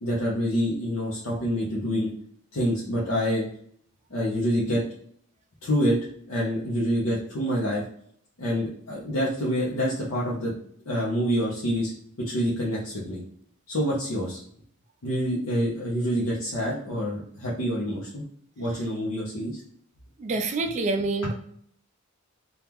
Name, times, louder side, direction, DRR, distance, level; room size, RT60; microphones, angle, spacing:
voice 1, 0.0-2.1 2.5-3.4 4.1-4.8 5.6-6.0 6.3-7.8 8.4-10.5 10.9-11.9 12.2-13.2 13.7-14.4 15.0-18.2 18.6-19.6, equal, 70° left, -5 dB, 0.7 m, -26 dB
voice 2, 20.2-21.3, right 3 dB, 30° right, 6 dB, 0.3 m, -26 dB
2.9 x 2.3 x 3.5 m, 0.64 s
head